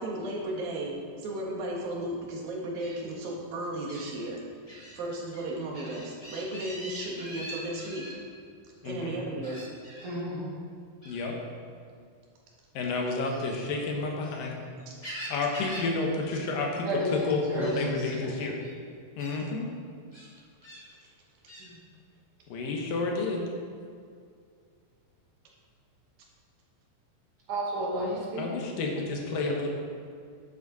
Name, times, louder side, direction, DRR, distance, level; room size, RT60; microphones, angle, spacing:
voice 1, 0.0-4.4 4.9-8.0 8.9-9.6 14.9-15.0, right 1 dB, 85° right, -2 dB, 3.5 m, -35 dB
Gull seagull, 2.8-2.9 3.9-4.1 4.7-4.9 5.3-8.1 9.4-10.1 11.0-11.3 13.1-14.4 14.8-15.9 16.2-16.4 16.7-17.2 17.6-17.9 18.6-18.7 19.2-19.4 20.1-20.8 21.5-21.7, right 1 dB, 10° left, 2.0 m, -43 dB
voice 2, 8.8-9.2 11.1-11.4 12.7-14.6 15.3-18.6 19.2-19.7 22.5-23.5 28.4-29.7, left 3 dB, 75° left, 0 dB, 3.0 m, -30 dB
voice 3, 10.0-10.6 16.8-17.8 18.1-18.4 21.6-21.8 27.5-28.4, equal, 45° right, -5 dB, 3.0 m, -31 dB
11.0 x 9.2 x 4.2 m, 2.2 s
omnidirectional pair, 4.0 m